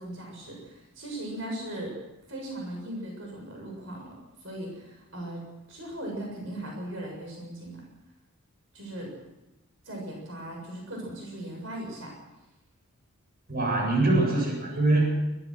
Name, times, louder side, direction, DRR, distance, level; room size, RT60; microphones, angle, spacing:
voice 1, 0.0-2.0 2.3-4.1 4.4-5.4 5.7-7.8 8.7-9.1 9.8-12.1, right 1 dB, 65° right, 0 dB, 7.1 m, -38 dB
voice 2, 13.5-15.2, right 2 dB, 45° right, 0 dB, 7.8 m, -23 dB
23.0 x 18.5 x 6.4 m, 0.96 s
head